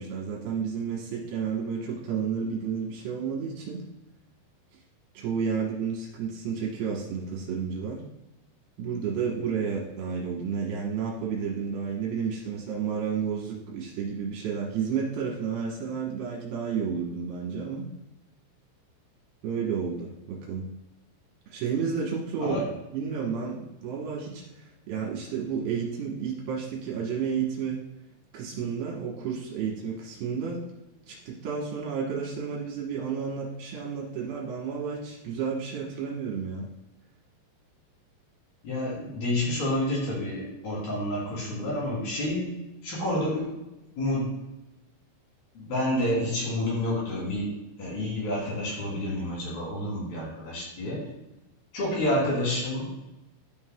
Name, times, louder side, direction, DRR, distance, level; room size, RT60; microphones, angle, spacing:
voice 1, 0.0-3.8 5.1-8.0 8.8-17.9 19.4-20.7 21.5-22.6 22.9-27.8 28.3-30.6 31.1-36.7, right 6 dB, 70° right, -3 dB, 2.9 m, -31 dB
voice 2, 38.6-42.5 42.8-43.5 44.0-44.3 45.5-47.5 47.8-51.1 51.7-52.9, left 1 dB, 60° left, -6 dB, 4.8 m, -29 dB
12.5 x 5.6 x 2.2 m, 0.98 s
omnidirectional pair, 5.1 m